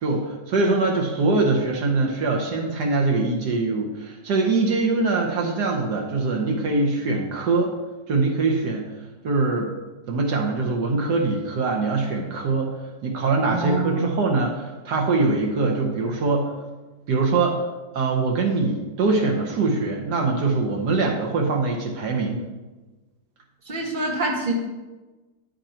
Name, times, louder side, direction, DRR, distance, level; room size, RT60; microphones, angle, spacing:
voice 1, 0.0-7.7 8.1-9.7 10.1-12.7 13.0-16.5 17.1-17.6 17.9-22.5, right 3 dB, 75° right, 1 dB, 1.6 m, -23 dB
voice 2, 13.5-14.2 23.6-24.5, right 3 dB, 30° right, -1 dB, 1.6 m, -26 dB
10.5 x 5.2 x 4.4 m, 1.2 s
omnidirectional pair, 1.8 m